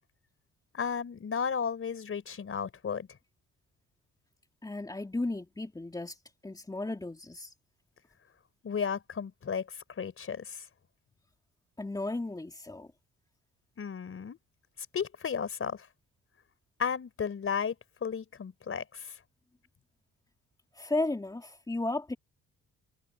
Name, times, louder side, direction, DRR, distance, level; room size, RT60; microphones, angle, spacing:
voice 1, 0.7-3.1 8.6-10.6 13.8-14.4 14.9-15.9 16.8-17.7 18.0-19.1, left 6 dB, 45° left, 4.6 m, -34 dB
voice 2, 4.6-7.5 11.8-12.9 20.7-22.2, left 2 dB, 15° left, 3.1 m, -34 dB
cardioid pair, 90°, 30 cm